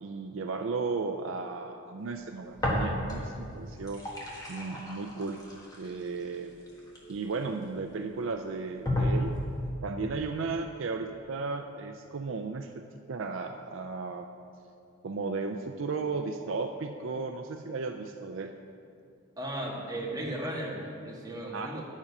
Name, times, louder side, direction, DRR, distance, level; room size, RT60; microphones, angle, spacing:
voice 1, 0.0-4.0 4.5-5.4 5.8-6.5 7.1-9.3 9.8-14.3 15.0-18.5 21.5-21.8, right 4 dB, 65° right, 6 dB, 0.4 m, -35 dB
sound 1, 2.6-3.4 3.7-7.6 8.2-8.3 8.8-9.7, left 1 dB, 15° left, 1.4 m, -32 dB
voice 2, 19.4-21.8, right 1 dB, 15° right, -4 dB, 1.5 m, -36 dB
10.0 x 7.2 x 5.4 m, 2.5 s
head